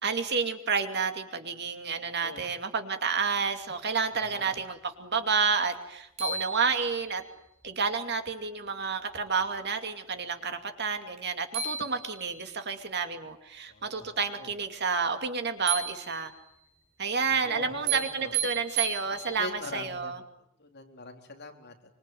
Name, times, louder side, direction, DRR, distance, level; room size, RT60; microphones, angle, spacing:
voice 1, 0.0-7.2 7.6-16.3 17.0-20.2, right 5 dB, 50° right, 7 dB, 2.6 m, -30 dB
voice 2, 2.0-2.5 4.1-4.5 13.7-14.5 17.3-18.4 19.4-20.1 20.6-21.7, left 3 dB, 50° left, 3 dB, 3.8 m, -43 dB
sound 1, 5.7-5.8 6.2-7.3 11.2-11.3 11.5-12.6 15.7-16.6 17.9-19.6, right 7 dB, 30° right, 6.4 m, -34 dB
25.5 x 24.5 x 9.3 m, 0.78 s
head